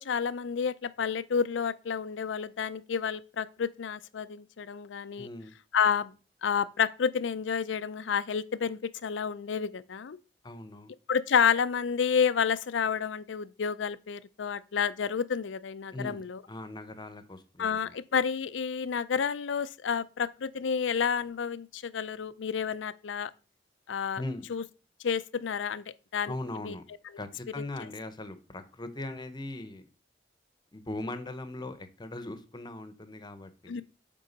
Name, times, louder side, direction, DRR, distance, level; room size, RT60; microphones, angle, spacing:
voice 1, 0.0-5.3 5.7-6.1 6.4-10.2 11.1-16.4 17.6-23.3 23.9-24.2 24.5-24.6 25.0-25.8 26.1-26.3 26.6-26.7 27.6-27.7 33.7-33.8, left 6 dB, 90° left, 0.5 m, -30 dB
voice 2, 5.2-5.5 10.4-10.9 15.9-17.9 24.1-24.5 26.3-26.8 27.2-29.9 30.7-33.8, left 2 dB, 25° left, 0.9 m, -40 dB
8.3 x 3.8 x 5.2 m
head